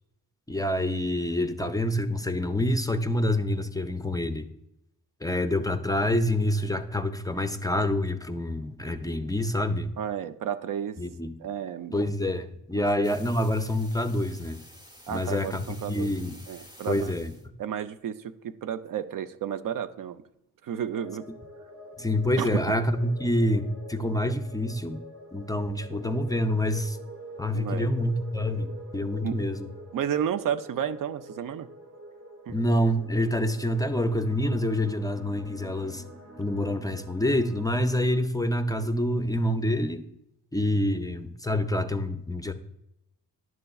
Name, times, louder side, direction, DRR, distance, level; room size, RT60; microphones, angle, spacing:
voice 1, 0.5-4.5 5.2-9.9 11.0-11.3 11.9-14.6 15.1-16.3 16.9-17.3 22.0-25.0 25.3-27.0 27.4-29.7 32.5-36.0 36.4-40.0 40.5-42.5, left 1 dB, 10° left, 8 dB, 0.4 m, -27 dB
voice 2, 10.0-11.0 11.4-12.0 12.7-12.8 15.1-16.2 16.5-17.1 17.6-20.2 20.6-21.3 22.4-22.5 27.5-27.9 29.2-29.4 29.9-31.7 32.5-32.6, right 9 dB, 70° right, 11 dB, 0.5 m, -32 dB
sound 1, 13.0-17.5, equal, 10° right, 0.8 m, -50 dB
sound 2, 20.9-38.2, right 1 dB, 40° right, 0.9 m, -46 dB
11.0 x 6.6 x 2.3 m, 0.81 s
cardioid pair, 85°, 35 cm